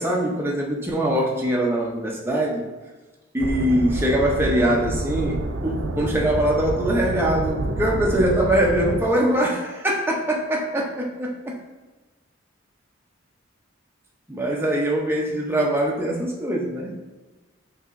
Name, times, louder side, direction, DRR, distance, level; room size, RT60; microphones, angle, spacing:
voice 1, 0.0-2.7 3.3-11.6 14.3-16.9, right 1 dB, 10° right, -1 dB, 0.5 m, -23 dB
sound 1, 3.4-9.0, right 2 dB, 65° right, 0.4 m, -28 dB
5.4 x 2.9 x 2.5 m, 1.2 s
head